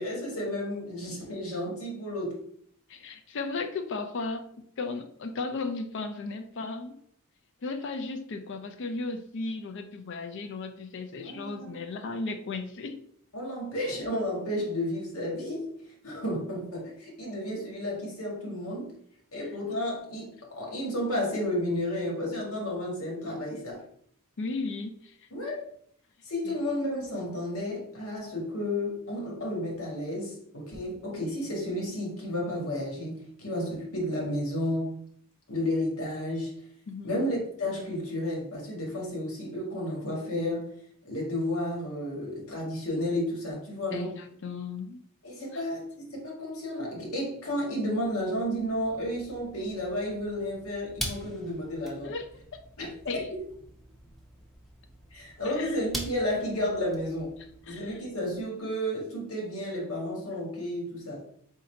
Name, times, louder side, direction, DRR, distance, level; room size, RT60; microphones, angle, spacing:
voice 1, 0.0-2.4 11.2-11.8 13.3-15.7 16.0-19.0 19.3-23.8 25.3-25.6 26.2-34.9 35.5-36.5 37.0-40.7 41.0-44.1 45.2-52.1 52.8-53.2 55.1-57.4 57.7-61.2, left 1 dB, 85° left, -2 dB, 1.6 m, -32 dB
voice 2, 2.9-7.0 7.6-13.1 24.4-25.1 26.4-26.6 36.9-37.2 43.9-45.0 45.5-45.6 52.0-52.6 53.1-53.3 55.4-55.8 57.7-57.8, left 3 dB, 60° left, 7 dB, 0.5 m, -35 dB
sound 1, 48.0-58.5, equal, ahead, 0.6 m, -44 dB
3.7 x 2.8 x 4.3 m, 0.66 s
head